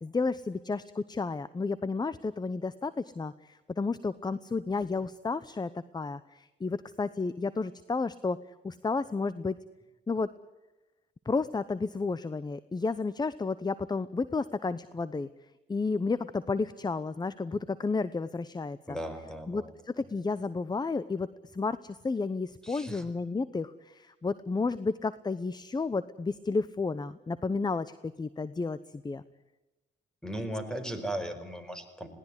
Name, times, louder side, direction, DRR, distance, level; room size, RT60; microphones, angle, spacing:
voice 1, 0.0-8.4 8.6-9.6 10.1-10.3 11.3-15.3 15.7-19.0 19.5-28.8 29.0-29.2, left 4 dB, 20° left, 16 dB, 0.8 m, -32 dB
voice 2, 18.9-19.7 22.6-23.0 30.2-32.1, right 1 dB, 5° left, 9 dB, 4.9 m, -37 dB
21.0 x 18.0 x 9.8 m, 1.1 s
cardioid pair, 90°, 20 cm